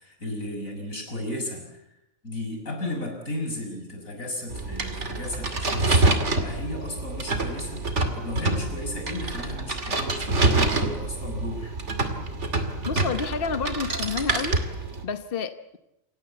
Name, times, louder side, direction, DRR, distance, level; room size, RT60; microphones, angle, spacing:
voice 1, 0.0-1.8 2.2-11.8, left 1 dB, 85° left, 3 dB, 6.5 m, -34 dB
sound 1, 4.5-15.0, right 2 dB, 60° right, 2.8 m, -26 dB
voice 2, 12.9-14.6 15.0-15.8, left 5 dB, 45° left, 10 dB, 1.2 m, -29 dB
28.0 x 16.5 x 8.2 m, 0.88 s
omnidirectional pair, 1.4 m